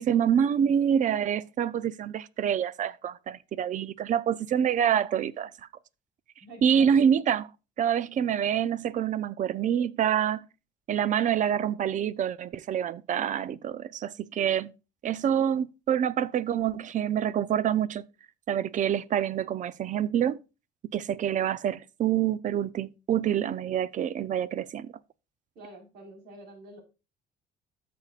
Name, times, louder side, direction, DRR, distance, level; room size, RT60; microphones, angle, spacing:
voice 1, 0.0-5.5 6.6-7.5 7.8-10.4 10.9-14.7 15.0-18.0 18.5-20.4 20.9-24.9, right 9 dB, 50° right, 0.6 m, -26 dB
voice 2, 6.4-7.0 25.5-26.8, right 2 dB, 70° right, 4.3 m, -47 dB
13.0 x 6.9 x 2.4 m
cardioid pair, 110°, 17 cm